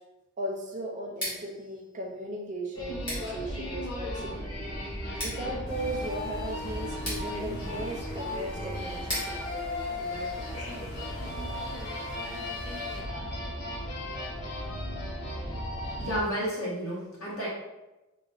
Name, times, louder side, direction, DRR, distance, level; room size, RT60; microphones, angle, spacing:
voice 1, 0.4-4.7 5.2-11.4, right 1 dB, 35° right, -1 dB, 0.4 m, -38 dB
Scissors, 1.0-10.9, equal, 20° left, 1.2 m, -42 dB
sound 1, 2.8-16.2, left 1 dB, 90° left, 0.7 m, -35 dB
Water, 5.7-13.0, left 1 dB, 45° left, 0.7 m, -51 dB
voice 2, 16.0-17.5, equal, 70° left, -5 dB, 1.1 m, -31 dB
4.0 x 2.1 x 2.4 m, 1.1 s
head